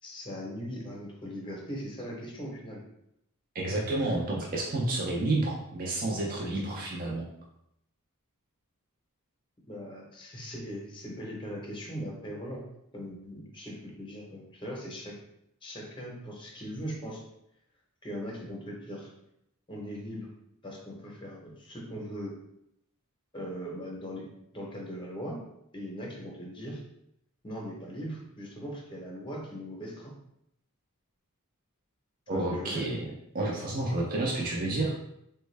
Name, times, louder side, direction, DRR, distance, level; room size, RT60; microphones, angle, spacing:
voice 1, 0.0-2.8 6.5-6.6 9.7-12.6 12.9-15.2 15.6-17.2 18.0-19.1 19.7-20.3 20.6-22.3 23.3-24.3 24.5-25.4 25.7-26.8 27.4-30.1 32.3-32.8, equal, 20° left, -1 dB, 0.8 m, -39 dB
voice 2, 3.5-7.3 32.3-33.0 33.3-34.9, right 2 dB, 40° right, -3 dB, 0.5 m, -30 dB
3.5 x 2.2 x 3.2 m, 0.78 s
head